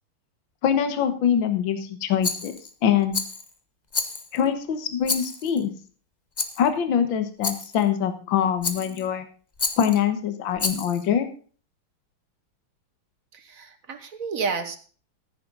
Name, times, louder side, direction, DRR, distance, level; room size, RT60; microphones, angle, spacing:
voice 1, 0.6-2.6 2.8-3.2 4.3-5.7 6.6-9.3 9.8-11.3, left 8 dB, 65° left, 8 dB, 1.9 m, -23 dB
Rattle, 2.2-2.7 3.1-3.5 3.9-4.4 5.0-5.6 6.4-6.7 7.4-7.8 8.6-9.1 9.6-10.0 10.6-11.0, left 4 dB, 30° left, 0.8 m, -30 dB
voice 2, 13.3-14.8, right 5 dB, 45° right, 9 dB, 1.6 m, -31 dB
14.5 x 9.5 x 3.9 m, 0.40 s
omnidirectional pair, 2.4 m